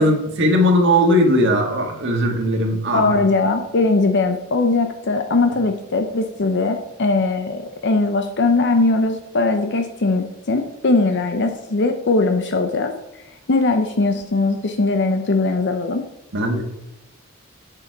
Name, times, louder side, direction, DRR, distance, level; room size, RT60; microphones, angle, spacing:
voice 1, 0.0-3.2 16.3-16.6, equal, 60° right, 1 dB, 1.6 m, -18 dB
voice 2, 2.9-12.9 13.5-16.0, left 3 dB, 55° left, 7 dB, 0.7 m, -20 dB
8.3 x 6.8 x 4.6 m, 0.85 s
head